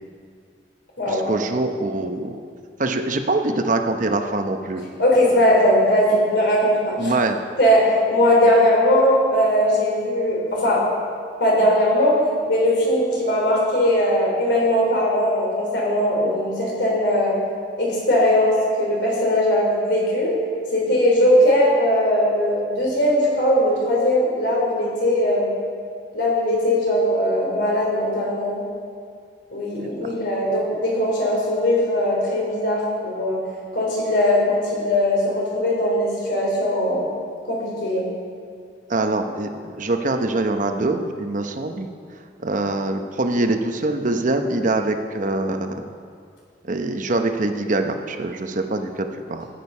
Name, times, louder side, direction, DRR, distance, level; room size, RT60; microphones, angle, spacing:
voice 1, 1.1-2.4 2.8-4.9 7.0-7.4 38.9-41.9 42.4-45.9 46.6-49.5, right 2 dB, 45° right, 6 dB, 0.8 m, -24 dB
voice 2, 5.0-7.1 7.6-10.8 11.4-12.2 12.5-17.4 17.8-20.4 20.7-25.5 26.1-28.6 29.5-33.4 33.7-37.1 37.5-38.1, left 1 dB, 65° left, -3 dB, 3.6 m, -19 dB
13.5 x 9.2 x 5.5 m, 2.2 s
head